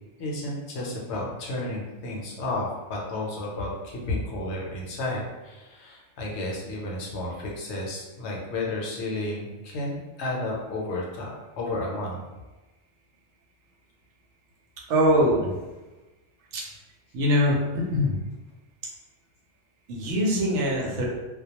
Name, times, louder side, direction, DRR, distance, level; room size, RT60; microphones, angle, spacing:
voice 1, 0.2-12.2, left 2 dB, 70° left, -2 dB, 0.8 m, -32 dB
voice 2, 14.9-15.5 16.5-16.6 17.1-18.2 19.9-21.1, equal, 75° right, -3 dB, 0.9 m, -22 dB
2.2 x 2.1 x 2.8 m, 1.1 s
omnidirectional pair, 1.3 m